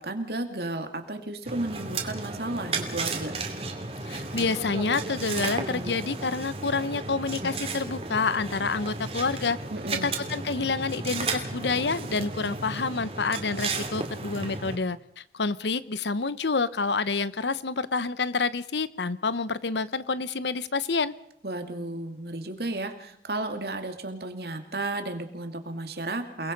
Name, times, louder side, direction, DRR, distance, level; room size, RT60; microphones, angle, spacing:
voice 1, 0.0-3.3 9.7-10.2 21.4-26.5, right 2 dB, 65° right, 6 dB, 2.6 m, -33 dB
sound 1, 1.5-14.8, right 3 dB, 35° right, 2.7 m, -34 dB
voice 2, 4.0-9.6 10.0-21.1, left 4 dB, 80° left, 16 dB, 0.9 m, -28 dB
29.0 x 20.0 x 5.4 m, 0.70 s
head